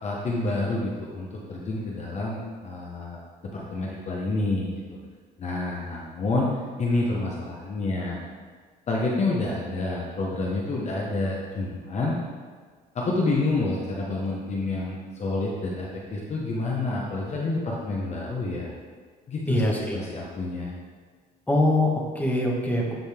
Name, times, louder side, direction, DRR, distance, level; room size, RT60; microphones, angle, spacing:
voice 1, 0.0-5.0 5.4-6.5 6.8-8.2 8.9-12.2 12.9-18.7 19.3-20.7, left 2 dB, 40° left, -3 dB, 1.1 m, -28 dB
voice 2, 19.5-20.0 21.5-22.9, left 1 dB, 10° left, -3 dB, 1.7 m, -23 dB
11.0 x 4.0 x 3.6 m, 1.5 s
cardioid pair, 110°, 17 cm